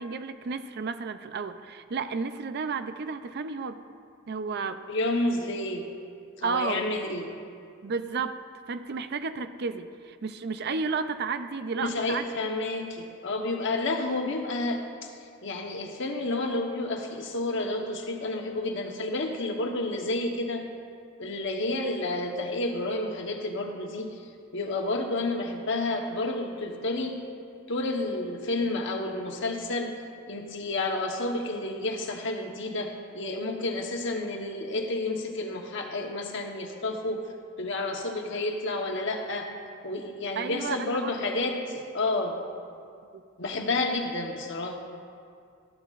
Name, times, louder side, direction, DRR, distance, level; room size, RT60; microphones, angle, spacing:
voice 1, 0.0-3.8 4.3-4.8 6.4-6.9 7.8-8.4 8.7-12.3 40.4-41.1 43.1-43.2, right 5 dB, 55° right, 10 dB, 0.5 m, -32 dB
voice 2, 4.9-5.9 6.4-7.3 11.8-15.1 15.4-20.7 21.2-24.2 24.5-27.2 27.7-29.9 30.3-37.2 37.6-39.5 39.8-42.4 43.4-44.7, left 2 dB, 60° left, 2 dB, 1.1 m, -30 dB
13.5 x 12.5 x 2.5 m, 2.3 s
head